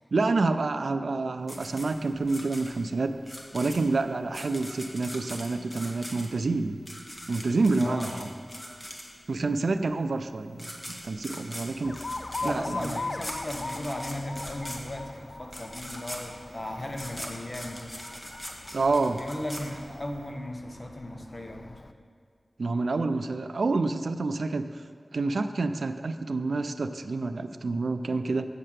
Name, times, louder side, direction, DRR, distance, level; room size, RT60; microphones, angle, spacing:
voice 1, 0.1-3.1 3.5-6.8 7.3-8.3 9.3-11.9 12.4-13.0 18.7-19.2 22.6-24.6 25.1-28.5, right 3 dB, 90° right, 10 dB, 0.4 m, -28 dB
sound 1, 1.5-9.4 10.2-10.3 10.5-20.2, equal, 20° left, 1.5 m, -41 dB
voice 2, 7.7-8.3 12.4-17.9 19.2-21.9, left 1 dB, 40° left, 3 dB, 1.1 m, -36 dB
Alarm, 11.8-21.9, left 3 dB, 60° left, 0.4 m, -40 dB
7.5 x 6.6 x 7.5 m, 2.2 s
cardioid pair, 45°, 0 cm